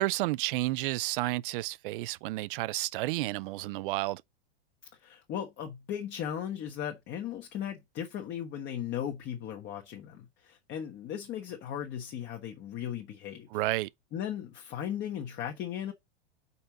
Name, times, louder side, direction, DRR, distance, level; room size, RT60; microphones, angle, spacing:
voice 1, 0.0-4.2 13.5-13.9, right 19 dB, 60° right, 0.6 m, -31 dB
voice 2, 5.0-13.6 14.1-15.9, left 9 dB, 35° left, 1.3 m, -37 dB
5.6 x 4.3 x 6.1 m
hypercardioid pair, 125°, 31 cm